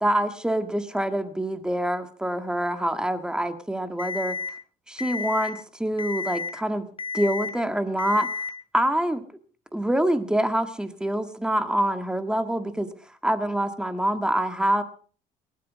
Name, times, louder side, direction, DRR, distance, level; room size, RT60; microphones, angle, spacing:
voice 1, 0.0-4.4 4.9-6.9 7.1-8.3 8.7-9.2 9.7-12.9 13.2-14.8, right 1 dB, 5° right, 9 dB, 1.8 m, -25 dB
Alarm, 4.0-4.5 5.0-5.5 6.0-6.5 7.0-7.5 8.0-8.5, left 5 dB, 35° left, 2.7 m, -31 dB
19.0 x 12.0 x 5.2 m, 0.43 s
cardioid pair, 90°, 16 cm